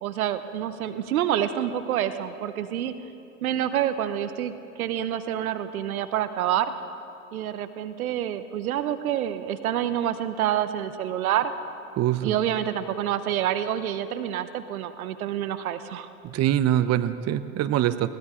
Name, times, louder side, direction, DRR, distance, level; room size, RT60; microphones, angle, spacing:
voice 1, 0.0-2.9 3.4-6.7 7.3-11.5 12.2-16.1, right 11 dB, 80° right, 11 dB, 0.9 m, -27 dB
voice 2, 11.9-12.3 16.2-18.1, right 12 dB, 40° right, 13 dB, 0.8 m, -24 dB
20.5 x 18.5 x 3.8 m, 2.6 s
hypercardioid pair, 75°, 42 cm